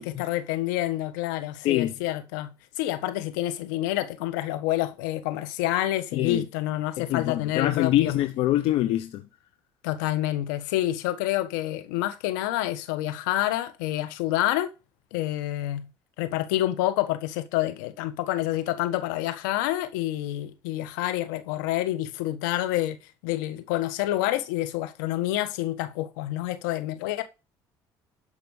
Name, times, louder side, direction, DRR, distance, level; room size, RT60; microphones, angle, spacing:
voice 1, 0.0-2.5 2.8-8.1 9.8-14.7 15.1-15.9 16.2-23.0 23.2-27.2, left 14 dB, 90° left, 1.4 m, -28 dB
voice 2, 6.1-6.4 7.1-9.2, left 14 dB, 75° left, 0.9 m, -24 dB
12.5 x 5.3 x 6.6 m
supercardioid pair, 75°, 10 cm